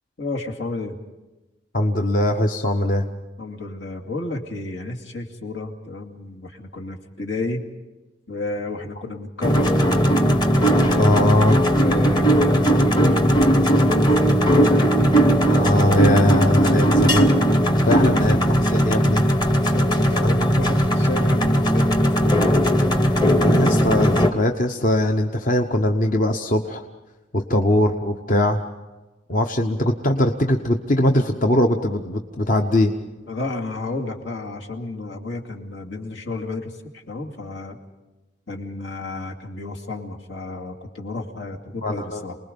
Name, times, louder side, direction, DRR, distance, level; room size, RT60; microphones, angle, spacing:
voice 1, 0.2-1.0 3.4-7.7 8.3-11.1 11.8-15.2 17.9-18.2 19.7-22.8 33.3-37.8 38.5-42.4, left 2 dB, 80° left, 1 dB, 2.4 m, -31 dB
voice 2, 1.7-3.1 11.0-11.6 15.5-17.3 17.8-19.2 20.2-20.5 23.4-26.8 27.3-28.6 29.3-32.9 41.8-42.2, left 1 dB, 45° left, 4 dB, 1.0 m, -21 dB
sound 1, 9.4-24.3, equal, 25° left, 1.1 m, -18 dB
28.5 x 20.5 x 5.3 m, 1.1 s
head